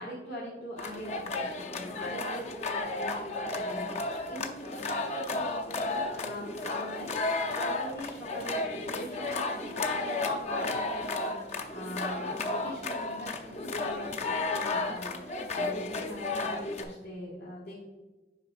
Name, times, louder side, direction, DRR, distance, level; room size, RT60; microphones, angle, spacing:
voice 1, 0.0-17.7, equal, 70° left, -8 dB, 1.7 m, -43 dB
sound 1, 0.8-16.8, left 2 dB, 40° left, 0.6 m, -33 dB
8.3 x 5.5 x 2.5 m, 1.2 s
head